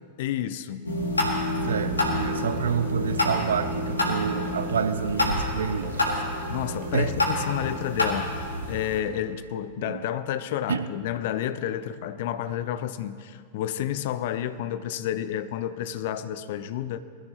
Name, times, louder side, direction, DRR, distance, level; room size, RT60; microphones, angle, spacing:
voice 1, 0.2-1.0 6.5-17.0, left 11 dB, 50° left, 13 dB, 0.6 m, -30 dB
sound 1, 0.8-9.0, left 1 dB, 80° left, 2.0 m, -28 dB
voice 2, 1.6-6.0 6.9-7.1 9.8-10.0 10.7-10.8, right 7 dB, 65° right, 11 dB, 0.6 m, -28 dB
sound 2, 2.0-8.0, right 2 dB, 45° right, 2.8 m, -45 dB
21.5 x 13.5 x 3.0 m, 2.2 s
figure-of-eight pair, 90°, 0 cm